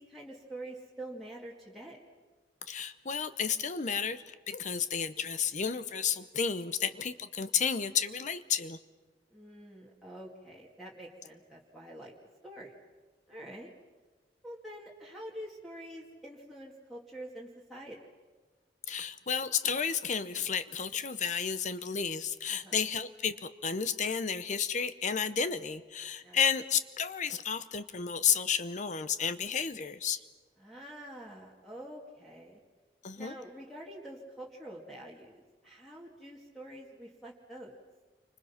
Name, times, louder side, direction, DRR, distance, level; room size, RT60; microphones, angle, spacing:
voice 1, 0.0-2.0 9.3-12.1 12.4-12.7 13.3-13.7 14.4-18.0 22.5-22.8 26.2-26.4 30.6-32.6 33.2-37.8, right 1 dB, ahead, -6 dB, 2.3 m, -46 dB
voice 2, 2.7-8.8 18.9-30.2 33.0-33.3, left 7 dB, 45° left, 12 dB, 0.8 m, -32 dB
29.5 x 25.5 x 5.8 m, 1.3 s
head